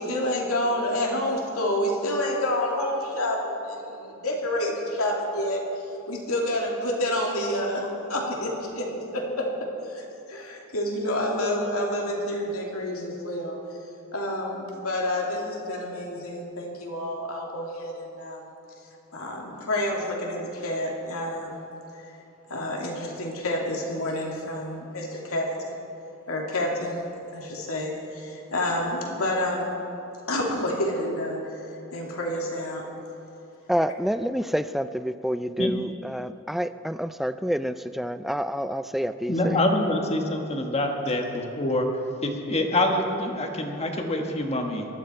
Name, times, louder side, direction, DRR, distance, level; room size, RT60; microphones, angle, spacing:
voice 1, 0.0-5.6 6.1-9.5 9.9-13.6 14.1-18.5 19.1-21.6 21.9-22.0 22.5-25.8 26.3-27.0 27.3-29.8 30.3-31.4 31.9-32.9, left 1 dB, 75° left, -1 dB, 2.6 m, -28 dB
voice 2, 33.7-39.6, equal, ahead, 12 dB, 0.3 m, -28 dB
voice 3, 39.3-41.9 42.2-44.9, left 1 dB, 30° left, 3 dB, 1.4 m, -25 dB
19.5 x 13.0 x 4.5 m, 2.8 s
head